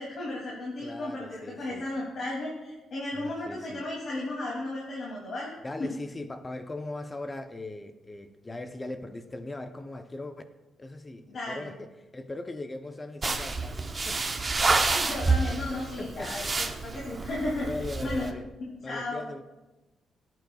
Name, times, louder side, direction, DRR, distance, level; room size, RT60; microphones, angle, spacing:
voice 1, 0.0-5.5 5.8-5.9 11.3-11.7 14.9-16.5 16.8-17.7 18.0-18.3 18.6-19.3, left 2 dB, 50° left, -5 dB, 2.5 m, -34 dB
voice 2, 0.8-1.9 3.1-3.9 5.6-10.4 10.8-14.4 16.0-16.5 17.6-18.5 18.8-19.4, left 2 dB, 15° left, 8 dB, 0.6 m, -39 dB
sound 1, 13.2-18.3, right 3 dB, 20° right, 0.7 m, -28 dB
17.5 x 9.3 x 2.3 m, 1.1 s
cardioid pair, 160°, 0 cm